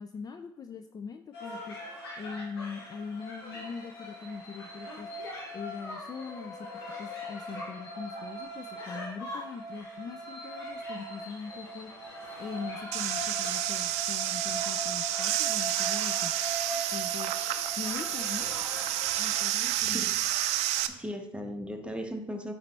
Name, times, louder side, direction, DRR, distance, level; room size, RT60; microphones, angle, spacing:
voice 1, 0.0-1.8 2.2-5.1 5.5-6.7 7.0-11.9 12.4-16.4 16.9-17.5 17.8-18.5 19.2-20.1, left 5 dB, 30° left, 8 dB, 0.4 m, -41 dB
sound 1, 1.3-19.4, equal, 80° left, 1.7 m, -40 dB
sound 2, 12.9-20.9, right 13 dB, 60° right, 0.4 m, -30 dB
voice 2, 20.9-22.5, equal, 10° right, 4 dB, 1.1 m, -37 dB
8.8 x 4.1 x 3.3 m, 0.81 s
hypercardioid pair, 60°, 13 cm